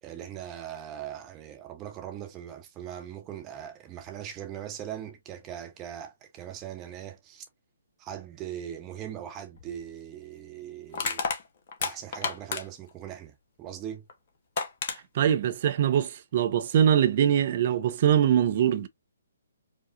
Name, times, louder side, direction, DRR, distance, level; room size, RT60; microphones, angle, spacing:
voice 1, 0.0-7.4 8.0-11.2 11.8-14.0, right 10 dB, 20° right, 1.1 m, -40 dB
Crushing, 9.6-9.7 10.9-12.9 14.1-14.2 14.6-15.0, left 5 dB, 45° left, 1.0 m, -31 dB
voice 2, 15.1-18.9, right 9 dB, 45° right, 0.7 m, -23 dB
5.0 x 2.4 x 2.5 m
figure-of-eight pair, 130°, 0 cm